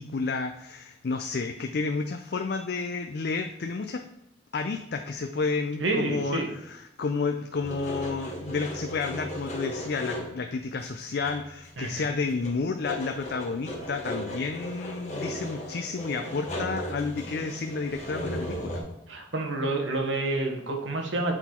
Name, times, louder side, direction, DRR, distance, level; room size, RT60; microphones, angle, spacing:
voice 1, 0.0-4.0 4.5-18.8, left 4 dB, 55° left, 6 dB, 0.4 m, -31 dB
voice 2, 5.8-6.5 11.8-12.0 19.1-21.3, right 2 dB, 80° right, 3 dB, 1.2 m, -28 dB
sound 1, 7.6-10.4 10.8-10.9 11.2-12.0 12.3-18.8, left 1 dB, 40° left, 1.9 m, -36 dB
8.1 x 3.9 x 4.4 m, 0.89 s
head